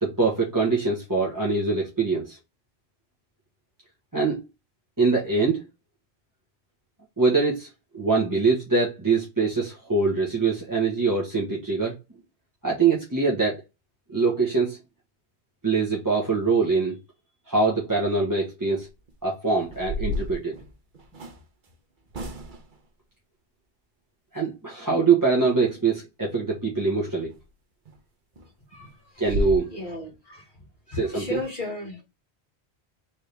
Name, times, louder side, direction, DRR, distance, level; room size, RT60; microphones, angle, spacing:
voice 1, 0.0-2.4 4.1-4.4 5.0-5.6 7.2-7.7 7.9-12.0 12.6-13.6 14.1-14.8 15.6-17.0 17.5-18.9 19.2-20.6 24.3-27.3 29.2-29.7 30.9-31.4, right 4 dB, 20° right, 1.2 m, -23 dB
sound 1, 18.8-19.1 19.6-21.4 22.1-22.8 27.3-27.4 27.8-28.0 28.4-28.5 28.8-28.9 29.2-29.6, equal, 50° right, 1.0 m, -31 dB
voice 2, 29.7-30.4 30.9-32.0, left 2 dB, 50° left, 2.5 m, -34 dB
4.3 x 3.6 x 3.4 m
omnidirectional pair, 1.1 m